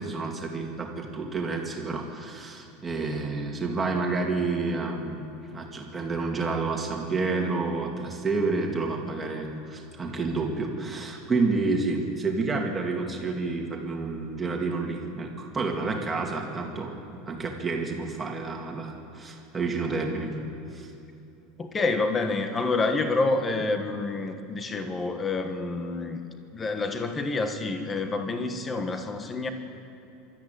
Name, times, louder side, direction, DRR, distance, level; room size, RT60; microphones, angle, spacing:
voice 1, 0.0-5.2 5.5-16.9 17.3-20.4 20.7-20.9, right 3 dB, 15° right, 1 dB, 2.3 m, -29 dB
voice 2, 21.6-26.2 26.5-29.5, left 3 dB, 15° left, 7 dB, 1.3 m, -28 dB
25.0 x 13.5 x 9.2 m, 2.8 s
supercardioid pair, 165°, 0 cm